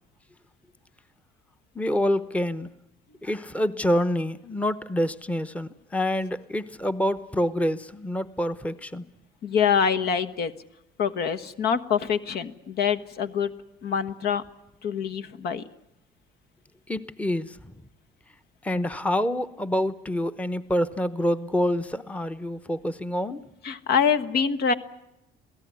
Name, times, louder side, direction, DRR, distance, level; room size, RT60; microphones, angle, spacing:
voice 1, 1.7-2.7 3.2-9.1 16.9-17.6 18.6-23.4, equal, 10° left, 13 dB, 0.9 m, -27 dB
voice 2, 9.4-10.5 11.0-13.5 13.8-14.4 14.8-15.6 23.6-24.7, left 7 dB, 70° left, 12 dB, 1.4 m, -25 dB
27.0 x 17.0 x 9.6 m, 0.89 s
cardioid pair, 110°, 17 cm